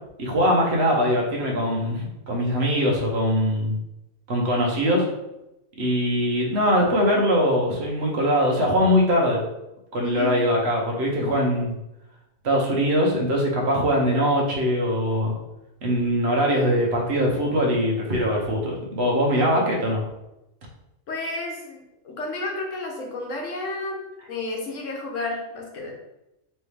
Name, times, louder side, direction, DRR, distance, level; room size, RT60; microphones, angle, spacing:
voice 1, 0.2-3.8 4.3-5.0 5.8-9.4 9.9-11.7 12.4-15.4 15.8-20.0, equal, 55° right, -2 dB, 1.2 m, -22 dB
voice 2, 10.0-10.4 11.1-11.5 19.3-19.6 21.1-21.8 22.0-24.0 24.3-25.9, left 2 dB, 65° left, 1 dB, 1.2 m, -31 dB
4.3 x 3.2 x 3.3 m, 0.91 s
omnidirectional pair, 1.4 m